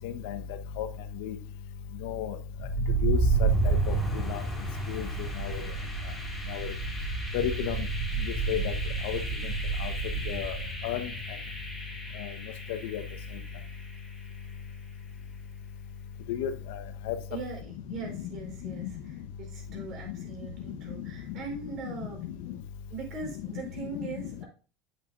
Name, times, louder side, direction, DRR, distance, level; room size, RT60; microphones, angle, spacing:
voice 1, 0.0-0.4 0.8-0.9 1.2-1.3 2.0-2.3 3.0-3.9 4.3-4.4 4.9-5.1 5.4-5.6 6.5-6.7 7.3-7.8 8.5-8.7 9.0-9.2 9.8-9.9 10.3-10.5 10.8-11.1 12.8-13.0 16.3-16.5 17.1-17.2, left 10 dB, 75° left, 9 dB, 1.1 m, -32 dB
sound 1, 2.5-14.4, right 3 dB, 10° left, 4.7 m, -31 dB
voice 2, 17.3-22.2 22.9-24.5, right 4 dB, 45° right, 2 dB, 4.8 m, -40 dB
8.7 x 8.2 x 2.6 m, 0.37 s
supercardioid pair, 120°, 0 cm